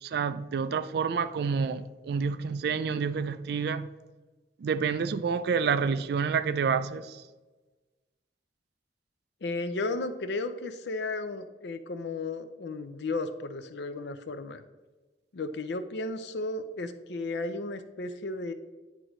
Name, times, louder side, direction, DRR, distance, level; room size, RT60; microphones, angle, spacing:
voice 1, 0.0-3.9 4.6-7.2, right 6 dB, 60° right, 13 dB, 0.3 m, -28 dB
voice 2, 9.4-14.6 15.3-18.5, left 2 dB, 70° left, 10 dB, 0.5 m, -34 dB
9.3 x 3.8 x 3.0 m, 1.2 s
head